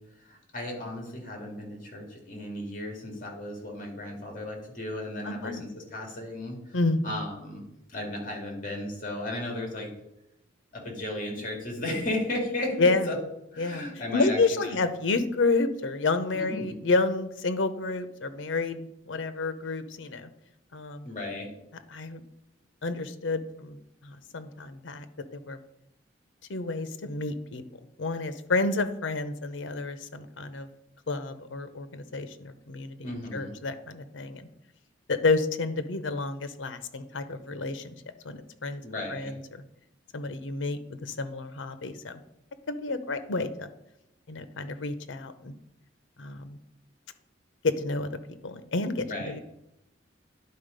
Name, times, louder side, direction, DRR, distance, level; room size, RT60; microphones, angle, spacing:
voice 1, 0.3-6.8 7.0-7.6 7.9-9.9 10.7-13.2 13.5-14.8 16.3-16.8 21.0-21.5 33.0-33.5 38.8-39.3 49.0-49.4, left 1 dB, 45° left, 1 dB, 2.4 m, -35 dB
voice 2, 5.2-5.6 6.7-7.2 12.8-13.1 13.6-13.9 14.1-20.3 20.7-21.1 21.9-22.2 22.8-23.8 24.0-25.0 25.3-25.6 26.5-27.6 28.0-30.7 31.1-34.5 35.1-37.9 38.2-38.8 39.1-39.6 40.1-42.2 42.7-43.7 44.3-45.5 46.2-46.6 47.8-49.4, left 3 dB, 85° left, 11 dB, 0.7 m, -30 dB
10.5 x 4.0 x 5.2 m, 0.85 s
head